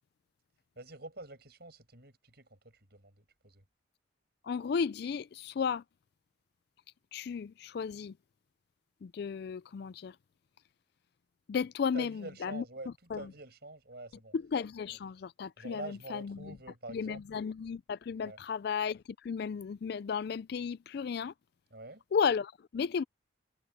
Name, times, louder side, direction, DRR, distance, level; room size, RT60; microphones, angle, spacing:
voice 1, 0.8-3.6 11.9-14.4 15.6-17.2 18.2-18.4 21.7-22.0, right 2 dB, 50° right, 7.9 m, -46 dB
voice 2, 4.4-5.8 7.1-8.1 9.0-10.2 11.5-12.6 13.1-13.2 14.3-16.6 16.9-21.3 22.1-23.0, left 6 dB, 55° left, 0.3 m, -34 dB
head